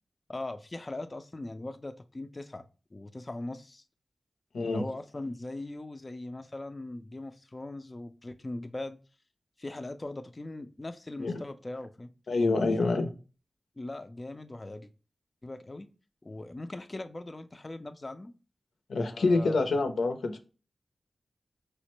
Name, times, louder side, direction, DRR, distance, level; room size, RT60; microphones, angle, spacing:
voice 1, 0.3-2.7 2.9-3.8 4.6-9.0 9.6-12.1 12.8-13.0 13.8-14.9 15.4-15.9 16.2-18.3 19.0-19.8, left 2 dB, 30° left, 0.3 m, -40 dB
voice 2, 12.3-13.1 18.9-20.4, left 3 dB, 90° left, 0.5 m, -26 dB
4.8 x 2.1 x 2.9 m
wide cardioid pair, 75°, 0 cm